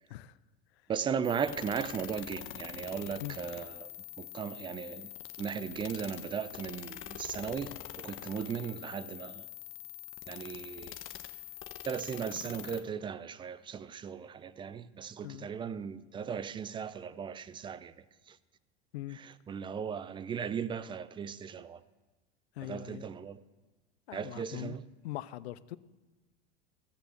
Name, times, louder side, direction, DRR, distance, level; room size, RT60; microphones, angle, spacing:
voice 1, 0.9-3.9 4.2-5.1 5.4-9.5 10.3-11.0 11.8-18.4 19.1-21.8 22.6-23.4 24.1-24.9, right 7 dB, 15° right, 0.3 m, -37 dB
sound 1, 1.2-12.8, left 13 dB, 40° left, 0.9 m, -45 dB
voice 2, 22.6-23.0 24.1-24.8 25.0-25.8, left 15 dB, 70° left, 0.6 m, -41 dB
14.5 x 6.8 x 7.8 m
hypercardioid pair, 90°, 33 cm